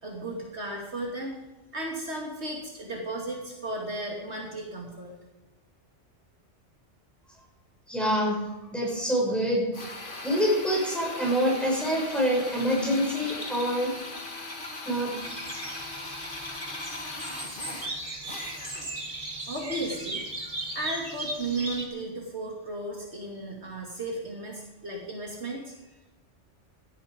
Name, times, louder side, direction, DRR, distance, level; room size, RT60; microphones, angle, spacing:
voice 1, 0.0-1.3 1.7-5.2 19.5-20.2 20.7-25.7, right 2 dB, 65° right, -1 dB, 2.9 m, -34 dB
voice 2, 7.9-8.4 8.7-9.7 10.2-13.9 14.9-15.1, equal, ahead, -4 dB, 7.1 m, -26 dB
Drill, 9.7-19.0, left 2 dB, 45° left, 2.0 m, -39 dB
sound 1, 15.2-21.8, right 2 dB, 50° right, 2.7 m, -37 dB
16.5 x 13.0 x 5.4 m, 1.1 s
omnidirectional pair, 1.2 m